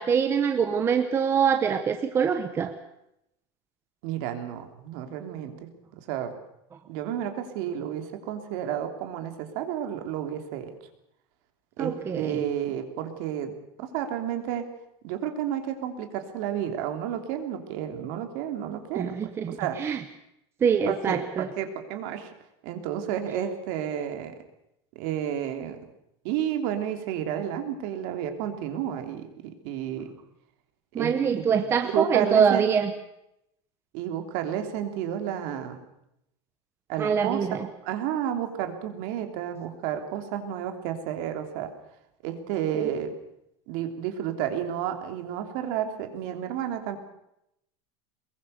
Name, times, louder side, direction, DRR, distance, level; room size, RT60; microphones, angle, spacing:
voice 1, 0.0-2.7 11.8-12.5 18.9-20.0 20.6-21.5 30.9-32.9 37.0-37.7 42.7-42.9, right 7 dB, 15° right, 8 dB, 1.0 m, -24 dB
voice 2, 4.0-5.7 6.1-6.3 6.9-10.7 11.8-14.6 15.0-19.8 20.9-22.3 22.6-24.3 24.9-25.8 26.2-30.1 31.0-32.7 33.9-35.8 36.9-37.5 37.8-41.7 42.2-43.1 43.7-47.0, right 10 dB, 50° right, 6 dB, 3.2 m, -31 dB
23.0 x 22.0 x 6.7 m, 0.82 s
supercardioid pair, 175°, 14 cm